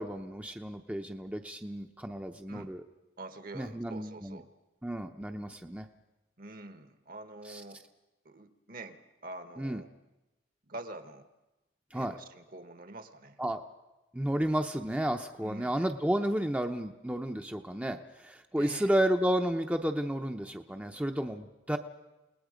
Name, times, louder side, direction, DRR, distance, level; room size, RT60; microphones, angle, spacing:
voice 1, 0.0-2.8 3.5-4.4 4.8-5.9 7.4-7.6 9.6-9.8 11.9-12.1 13.4-13.6 14.1-21.8, right 1 dB, 10° right, 5 dB, 0.7 m, -32 dB
voice 2, 3.2-4.5 6.4-7.8 8.2-9.9 10.7-11.3 11.9-13.4 15.4-15.8 18.5-18.9, right 2 dB, 50° right, 10 dB, 1.3 m, -46 dB
29.0 x 19.5 x 5.1 m, 1.0 s
head